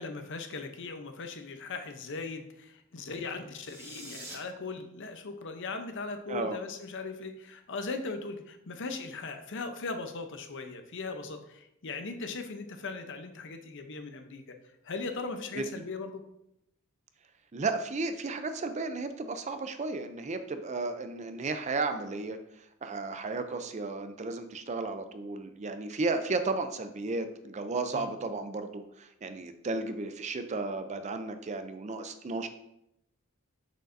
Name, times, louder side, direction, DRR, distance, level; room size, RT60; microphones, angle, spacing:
voice 1, 0.0-14.4 14.8-16.2 27.9-28.1, left 3 dB, 60° left, 6 dB, 0.7 m, -39 dB
sound 1, 3.5-4.3, right 1 dB, 10° right, 1.4 m, -45 dB
voice 2, 17.5-22.4 22.8-32.5, right 3 dB, 30° right, 9 dB, 0.4 m, -34 dB
6.6 x 6.4 x 2.6 m, 0.79 s
head